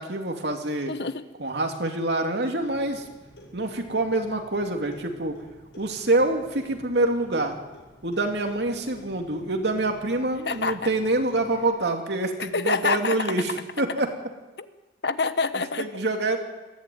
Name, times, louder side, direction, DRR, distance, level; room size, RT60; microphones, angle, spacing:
voice 1, 0.0-0.9 1.4-3.0 3.5-5.4 5.8-7.6 8.0-13.5 13.8-14.1 15.8-16.4, right 2 dB, 65° right, 3 dB, 2.8 m, -26 dB
voice 2, 0.9-1.2 10.4-10.8 12.4-13.3 14.6-14.7 15.0-16.0, left 4 dB, 65° left, 11 dB, 1.2 m, -27 dB
Clock, 2.6-11.7, equal, 85° left, 6.5 m, -50 dB
21.5 x 15.0 x 9.4 m, 1.1 s
head